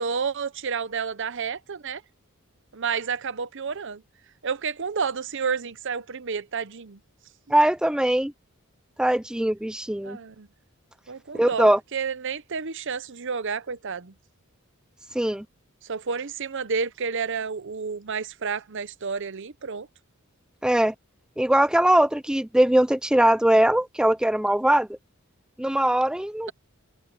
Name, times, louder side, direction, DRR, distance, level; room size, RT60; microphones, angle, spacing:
voice 1, 0.0-2.0 2.7-4.0 4.4-7.0 10.0-10.5 11.1-14.1 15.8-19.9, right 5 dB, 60° right, 0.8 m, -30 dB
voice 2, 7.5-8.3 9.0-10.2 11.3-11.8 15.1-15.4 20.6-20.9 21.4-24.9 25.6-26.5, right 1 dB, 5° right, 0.4 m, -21 dB
head